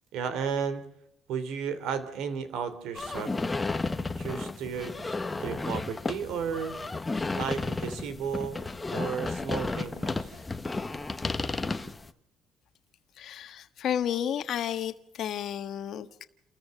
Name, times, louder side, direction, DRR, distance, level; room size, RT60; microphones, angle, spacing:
voice 1, 0.1-0.8 1.3-3.3 4.2-5.0 5.4-6.7 7.3-8.6 8.9-10.3, right 6 dB, 75° right, 3.1 m, -33 dB
sound 1, 2.9-12.1, left 3 dB, 15° left, 1.2 m, -33 dB
voice 2, 13.2-16.2, left 9 dB, 55° left, 1.4 m, -32 dB
30.0 x 14.0 x 6.5 m
cardioid pair, 130°, 0 cm